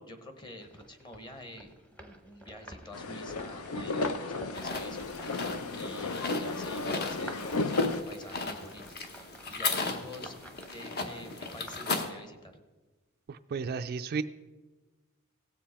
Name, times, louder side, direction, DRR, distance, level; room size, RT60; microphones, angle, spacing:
voice 1, 0.0-5.4 5.7-8.8 9.1-12.5, left 1 dB, 20° left, 7 dB, 1.1 m, -48 dB
sound 1, 0.6-12.2, equal, 5° left, 0.8 m, -51 dB
sound 2, 2.9-8.0, left 3 dB, 80° left, 0.7 m, -33 dB
sound 3, 4.5-12.1, left 3 dB, 45° left, 1.0 m, -36 dB
voice 2, 13.3-14.2, right 5 dB, 45° right, 10 dB, 0.3 m, -33 dB
17.0 x 7.4 x 4.3 m, 1.2 s
head